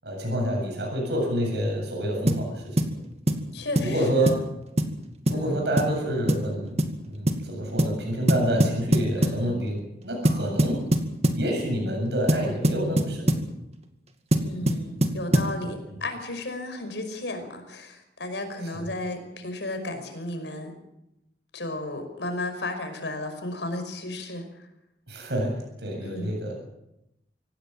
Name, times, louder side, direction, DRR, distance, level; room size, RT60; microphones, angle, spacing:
voice 1, 0.0-2.8 3.8-4.4 5.3-6.8 7.1-9.8 10.0-10.8 11.3-13.3 25.1-26.5, right 1 dB, 70° right, 1 dB, 7.9 m, -27 dB
sound 1, 2.3-2.5 2.8-2.9 3.3-3.5 3.7-3.9 4.3-4.5 4.8-4.9 5.3-5.4 5.8-6.0 6.3-6.5 6.8-7.0 7.3-7.4 7.8-8.0 8.3-9.4 10.2-11.4 12.3-13.5 14.3-15.6, right 1 dB, 35° right, 2.1 m, -23 dB
voice 2, 3.5-4.3 5.3-5.6 9.2-9.6 14.4-20.7 21.5-24.7 26.0-26.3, left 2 dB, 85° left, 6 dB, 5.5 m, -34 dB
25.5 x 17.5 x 7.6 m, 0.86 s
head